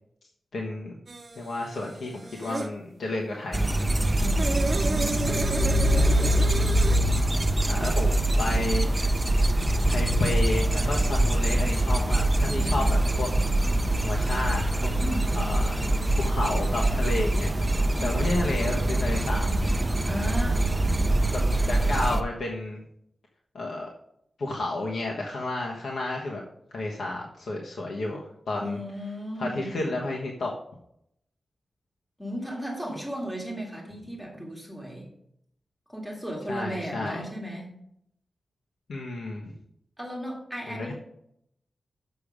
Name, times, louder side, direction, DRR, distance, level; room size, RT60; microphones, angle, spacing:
voice 1, 0.5-1.0 1.4-3.7 6.1-6.3 7.6-8.9 9.8-13.3 14.0-14.9 15.3-15.8 16.2-17.5 18.0-19.5 21.3-21.4 21.7-22.8 23.5-23.9 24.4-26.4 26.7-28.8 29.4-30.5 36.5-37.2 38.9-39.5 40.7-40.9, left 2 dB, 85° left, -2 dB, 1.2 m, -31 dB
sound 1, 1.1-2.7 3.6-7.0, right 3 dB, 35° right, 0.9 m, -33 dB
sound 2, 3.5-22.2, right 1 dB, 15° right, 0.6 m, -24 dB
voice 2, 4.2-6.2 15.0-15.6 20.1-20.8 28.6-30.1 32.2-35.1 35.9-37.7 40.0-40.9, equal, ahead, -2 dB, 2.2 m, -35 dB
6.9 x 6.7 x 5.0 m, 0.72 s
wide cardioid pair, 145°, 0 cm